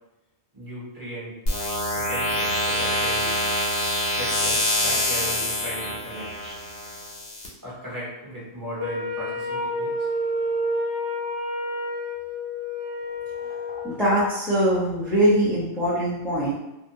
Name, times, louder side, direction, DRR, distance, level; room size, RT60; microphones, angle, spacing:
voice 1, 0.5-1.3 1.9-3.3 4.1-6.6 7.6-10.1, equal, 20° right, -10 dB, 1.0 m, -37 dB
sound 1, 1.5-7.5, left 1 dB, 80° left, 1.0 m, -25 dB
Wind instrument woodwind instrument, 8.8-14.0, left 1 dB, 65° right, 0.9 m, -29 dB
voice 2, 13.8-16.5, right 1 dB, ahead, -11 dB, 0.6 m, -22 dB
2.7 x 2.2 x 2.6 m, 0.93 s
omnidirectional pair, 1.1 m